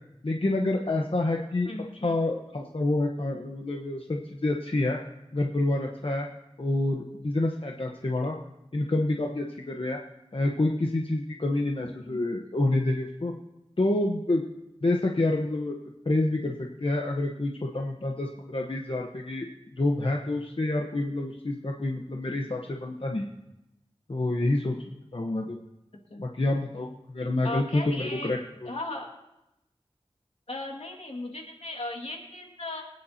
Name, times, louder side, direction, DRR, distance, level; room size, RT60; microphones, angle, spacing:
voice 1, 0.2-1.7 2.0-5.0 5.3-6.3 6.6-8.4 8.7-10.0 10.3-13.3 13.8-14.4 14.8-15.8 16.0-19.5 19.8-23.3 24.1-24.8 25.1-25.6 26.2-26.9 27.1-28.4, left 2 dB, 60° left, 1 dB, 1.1 m, -27 dB
voice 2, 1.7-2.2 12.0-12.2 26.1-26.3 27.4-28.3 28.6-29.1 30.5-32.8, left 2 dB, 80° left, 1 dB, 2.2 m, -36 dB
24.0 x 9.7 x 2.9 m, 0.91 s
wide cardioid pair, 50°, 10 cm